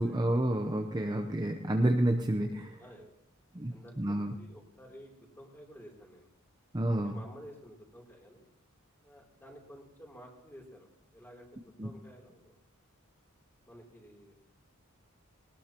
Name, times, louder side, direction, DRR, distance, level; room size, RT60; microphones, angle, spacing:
voice 1, 0.0-2.8 3.5-4.4 6.7-7.2 11.8-11.9, right 1 dB, 20° right, 3 dB, 0.7 m, -29 dB
voice 2, 3.7-6.3 7.0-8.4 9.0-12.6 13.7-14.3, equal, 10° left, -1 dB, 3.2 m, -52 dB
20.5 x 19.0 x 3.0 m, 0.81 s
head